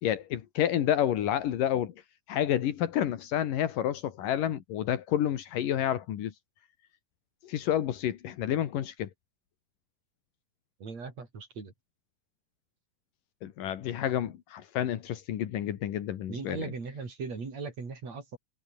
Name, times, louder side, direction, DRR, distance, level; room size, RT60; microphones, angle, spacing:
voice 1, 0.0-1.9 2.3-6.3 7.4-9.1 13.4-16.7, left 11 dB, 80° left, 3.3 m, -29 dB
voice 2, 10.8-11.7 16.3-18.4, right 4 dB, 55° right, 6.2 m, -38 dB
omnidirectional pair, 3.8 m